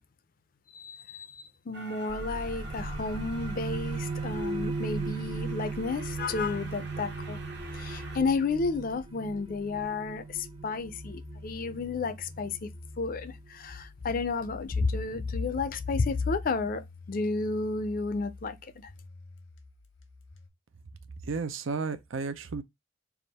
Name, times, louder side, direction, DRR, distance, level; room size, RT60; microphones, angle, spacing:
voice 1, 0.7-7.4 7.7-12.7 13.0-18.7, left 4 dB, 45° left, 0.4 m, -32 dB
Train, 1.7-8.2, right 2 dB, 60° right, 0.9 m, -47 dB
sound 1, 2.1-13.5, right 3 dB, 25° right, 0.4 m, -38 dB
sound 2, 2.3-20.5, left 2 dB, 85° left, 0.9 m, -49 dB
voice 2, 21.2-22.6, right 4 dB, 85° right, 0.5 m, -33 dB
3.5 x 2.4 x 4.1 m
head